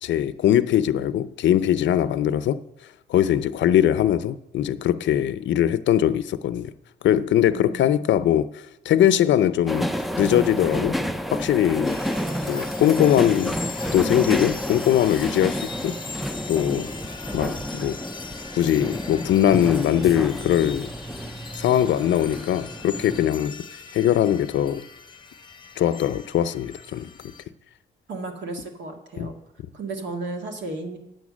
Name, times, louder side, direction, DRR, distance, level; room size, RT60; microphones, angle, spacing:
voice 1, 0.0-2.6 3.1-6.7 7.0-8.5 8.9-9.9 10.2-11.0 11.3-12.0 12.5-13.6 13.9-16.0 16.5-16.9 17.3-18.0 18.5-20.9 21.6-23.6 23.9-24.8 25.8-27.1 29.2-29.3, left 11 dB, 65° left, 0.6 m, -21 dB
voice 2, 7.5-7.9 28.1-29.3 29.7-31.0, right 3 dB, 70° right, 1.9 m, -34 dB
sound 1, 9.7-23.3, equal, ahead, 0.4 m, -30 dB
sound 2, 11.8-27.4, left 4 dB, 25° left, 0.9 m, -40 dB
9.1 x 7.1 x 6.2 m
cardioid pair, 90°, 20 cm